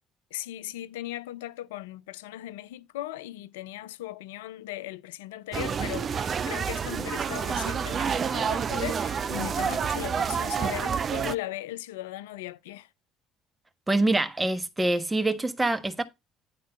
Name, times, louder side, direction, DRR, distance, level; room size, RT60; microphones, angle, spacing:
voice 1, 0.3-12.9, left 15 dB, 80° left, 0.4 m, -38 dB
sound 1, 5.5-11.4, right 7 dB, 45° right, 0.6 m, -28 dB
voice 2, 13.9-16.0, right 2 dB, 15° right, 1.2 m, -25 dB
9.6 x 3.7 x 5.3 m
hypercardioid pair, 60°, 0 cm